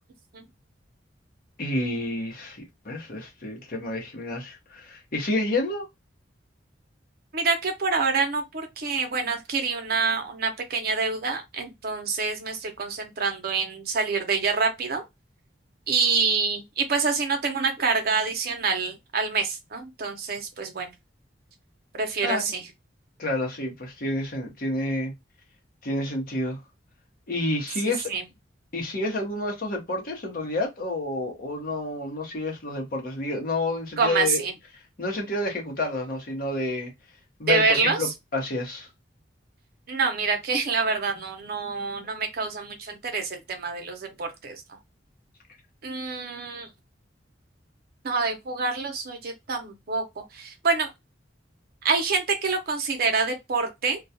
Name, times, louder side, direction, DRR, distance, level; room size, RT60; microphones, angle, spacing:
voice 1, 1.6-5.9 22.2-22.4 23.2-25.1 25.8-26.6 27.3-28.1 28.7-34.4 35.0-36.9 37.4-38.9, left 2 dB, 50° left, 0.9 m, -29 dB
voice 2, 7.3-15.0 15.9-20.9 21.9-22.6 27.8-28.2 34.0-34.5 37.5-38.1 39.9-44.8 45.8-46.7 48.0-50.9 51.8-54.0, right 4 dB, 55° right, 0.7 m, -26 dB
2.3 x 2.2 x 2.7 m
head